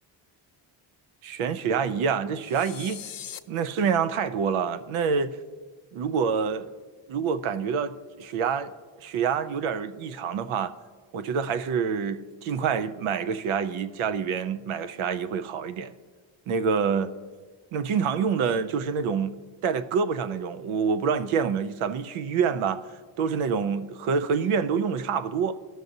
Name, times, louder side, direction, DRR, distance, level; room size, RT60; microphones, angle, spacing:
voice 1, 1.2-3.0 3.5-5.3 5.9-6.7 7.1-8.7 9.0-10.7 11.1-15.9 16.5-17.1 17.7-19.4 19.6-22.8 23.2-25.6, right 6 dB, 85° right, 0.7 m, -27 dB
sound 1, 2.4-3.4, left 10 dB, 50° left, 0.5 m, -40 dB
16.0 x 6.3 x 2.7 m
cardioid pair, 65°, 48 cm